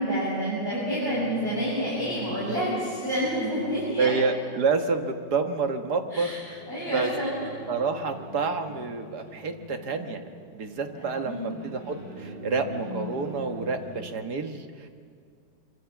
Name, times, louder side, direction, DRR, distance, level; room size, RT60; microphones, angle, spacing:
voice 1, 0.0-4.1 6.1-6.4 6.7-7.3 10.9-11.7, equal, 10° right, -8 dB, 7.1 m, -29 dB
sound 1, 0.6-14.1, equal, 35° right, 6.0 m, -44 dB
voice 2, 4.0-6.6 6.9-7.1 7.7-10.2 10.5-14.9, right 4 dB, 60° right, 6 dB, 2.1 m, -28 dB
25.5 x 25.0 x 7.3 m, 2.3 s
omnidirectional pair, 2.0 m